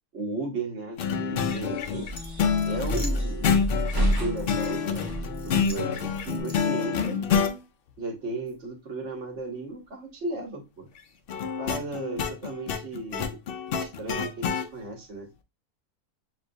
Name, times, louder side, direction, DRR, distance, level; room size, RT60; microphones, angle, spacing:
voice 1, 0.1-2.1 2.6-3.8 4.1-7.2 8.0-10.9 11.6-13.4 13.8-15.3, right 3 dB, 55° right, 2 dB, 1.3 m, -35 dB
sound 1, 1.0-7.6 11.3-14.7, left 6 dB, 75° left, 0.5 m, -28 dB
sound 2, 1.4-6.4, equal, 20° right, 0.7 m, -30 dB
sound 3, 2.2-3.6 4.1-5.0 5.3-6.8, left 2 dB, 30° left, 0.9 m, -45 dB
6.7 x 2.4 x 2.5 m, 0.25 s
omnidirectional pair, 1.6 m